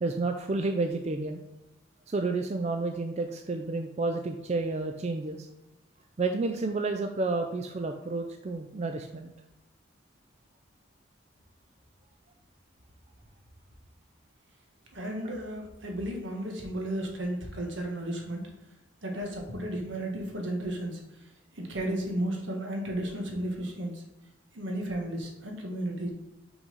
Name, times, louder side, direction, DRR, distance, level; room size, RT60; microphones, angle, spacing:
voice 1, 0.0-1.4 2.1-5.5 6.2-9.3 15.2-15.3, right 3 dB, 35° right, 5 dB, 0.4 m, -30 dB
voice 2, 14.9-18.4 19.0-21.0 21.5-24.0 24.5-26.1, right 1 dB, 75° right, 1 dB, 1.5 m, -33 dB
5.8 x 4.0 x 5.3 m, 0.96 s
head